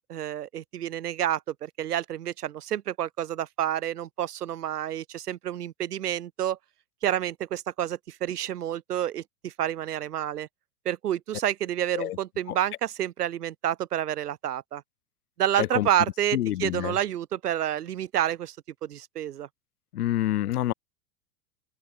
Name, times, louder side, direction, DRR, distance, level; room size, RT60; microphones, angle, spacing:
voice 1, 0.1-6.6 7.0-10.5 10.9-14.8 15.4-18.6 18.8-19.5, right 11 dB, 80° right, 2.2 m, -29 dB
voice 2, 15.6-15.9 16.3-16.9 19.9-20.7, left 13 dB, 75° left, 2.0 m, -27 dB
hypercardioid pair, 100°, 46 cm